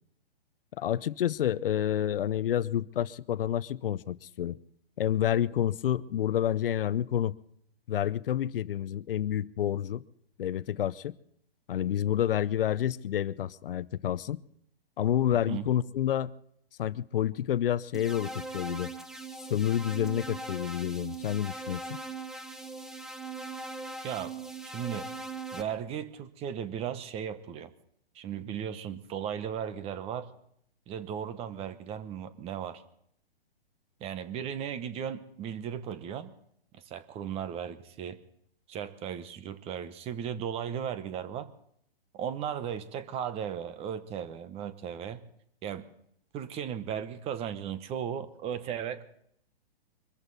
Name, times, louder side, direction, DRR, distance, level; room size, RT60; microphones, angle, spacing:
voice 1, 0.8-4.6 5.0-7.3 7.9-10.0 10.4-11.1 11.7-14.4 15.0-16.3 16.8-18.9 19.5-22.0, left 11 dB, 65° left, 17 dB, 0.8 m, -29 dB
sound 1, 17.9-25.6, right 3 dB, ahead, 0.6 m, -40 dB
voice 2, 24.0-24.3 24.6-25.1 25.5-27.7 28.1-30.3 30.9-32.8 34.0-36.3 36.7-38.2 38.7-41.5 42.1-45.2 45.6-45.9 46.3-49.0, right 8 dB, 20° right, 13 dB, 1.0 m, -36 dB
24.0 x 14.0 x 4.1 m, 0.70 s
hypercardioid pair, 140°, 31 cm